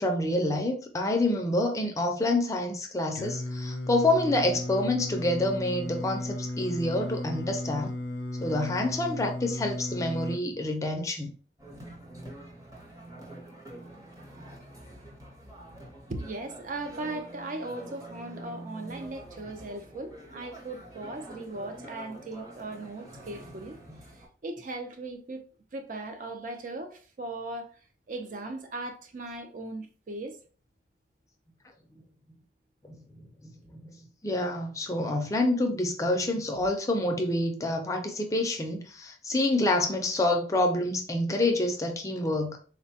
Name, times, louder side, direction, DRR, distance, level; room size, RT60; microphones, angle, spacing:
voice 1, 0.0-8.0 8.4-11.3 23.9-24.0 32.8-33.8 34.2-42.6, left 1 dB, 15° left, 0.4 m, -27 dB
Singing, 3.1-10.4, left 1 dB, 75° left, 0.5 m, -35 dB
sound 1, 11.6-24.3, right 1 dB, 20° right, 0.7 m, -46 dB
voice 2, 16.1-23.8 24.1-25.4 25.7-27.8 28.1-30.4, right 2 dB, 45° right, 0.4 m, -38 dB
3.8 x 2.2 x 2.7 m
head